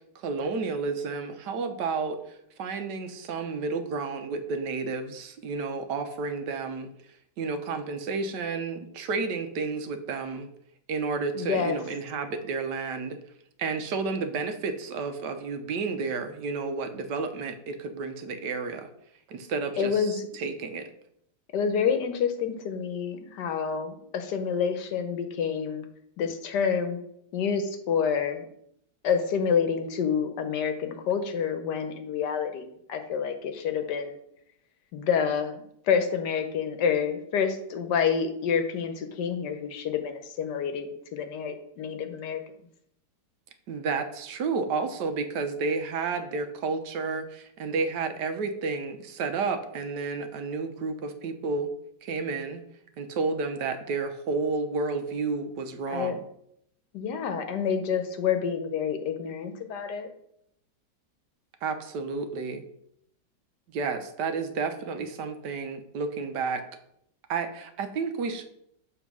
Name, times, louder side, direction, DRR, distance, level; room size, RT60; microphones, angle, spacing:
voice 1, 0.1-6.9 7.4-10.5 10.9-13.2 13.6-18.9 19.3-20.9 43.7-51.7 52.0-52.6 53.0-56.2 61.6-62.6 63.7-66.6 67.3-68.4, right 4 dB, 75° right, 8 dB, 1.3 m, -31 dB
voice 2, 11.3-11.8 19.8-20.3 21.5-25.8 26.2-27.0 27.3-28.5 29.0-32.6 32.9-34.2 34.9-42.4 55.9-56.1 56.9-60.1, left 7 dB, 75° left, 7 dB, 1.3 m, -28 dB
7.2 x 3.6 x 5.9 m, 0.73 s
omnidirectional pair, 1.9 m